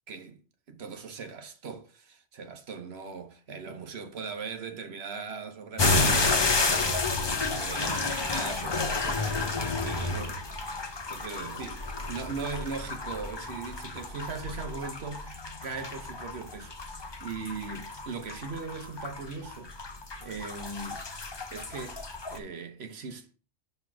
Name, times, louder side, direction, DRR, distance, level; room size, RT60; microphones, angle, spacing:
voice 1, 0.1-0.4 0.7-10.4 11.1-19.7 20.2-21.1 21.5-22.0 22.3-23.4, right 5 dB, 60° right, 1.1 m, -39 dB
sound 1, 5.8-22.4, left 3 dB, 30° left, 0.6 m, -31 dB
8.1 x 3.3 x 5.9 m
omnidirectional pair, 1.2 m